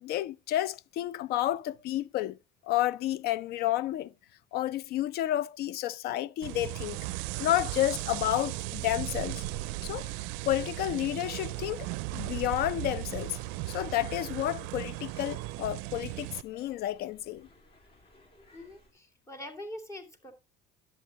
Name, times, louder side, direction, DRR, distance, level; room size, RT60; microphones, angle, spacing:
voice 1, 0.0-2.4 2.6-4.1 4.5-7.0 7.4-9.4 9.8-10.1 10.5-13.4 13.7-17.5, left 14 dB, 60° left, 0.5 m, -31 dB
sound 1, 6.4-16.4, right 19 dB, 85° right, 0.4 m, -37 dB
sound 2, 8.6-18.9, left 1 dB, 30° left, 2.7 m, -60 dB
voice 2, 18.5-20.3, left 1 dB, 15° left, 2.5 m, -44 dB
11.0 x 7.8 x 3.0 m
cardioid pair, 110°, 18 cm